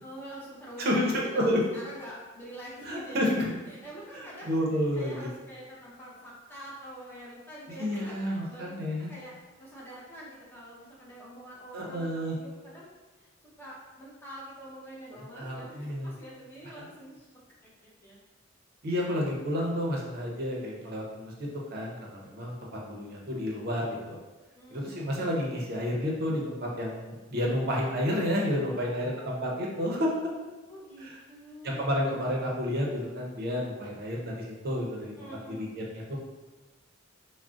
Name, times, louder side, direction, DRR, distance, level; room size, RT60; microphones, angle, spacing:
voice 1, 0.0-3.2 3.7-4.5 4.9-8.7 9.1-12.9 13.2-13.3 13.6-17.3 17.6-18.2 24.6-25.3 28.7-30.0 30.7-31.8 35.2-35.7, right 1 dB, 10° left, -6 dB, 0.6 m, -46 dB
voice 2, 0.8-1.6 2.8-3.4 4.4-5.3 7.8-9.1 11.7-12.4 15.1-16.1 16.8-16.9 18.8-21.3 21.7-24.2 24.7-30.1 31.0-31.2 31.6-35.1 35.5-36.2, equal, 50° right, -2 dB, 0.6 m, -30 dB
2.4 x 2.0 x 3.6 m, 1.2 s
head